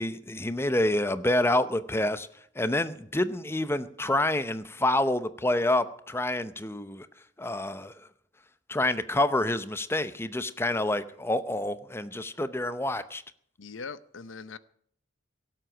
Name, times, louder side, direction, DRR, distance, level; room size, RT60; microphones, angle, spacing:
voice 1, 0.0-2.3 2.6-7.1 7.4-7.9 8.7-13.2, left 1 dB, 10° left, 0.7 m, -27 dB
voice 2, 13.6-14.6, left 5 dB, 80° left, 0.7 m, -41 dB
17.5 x 7.8 x 10.0 m
head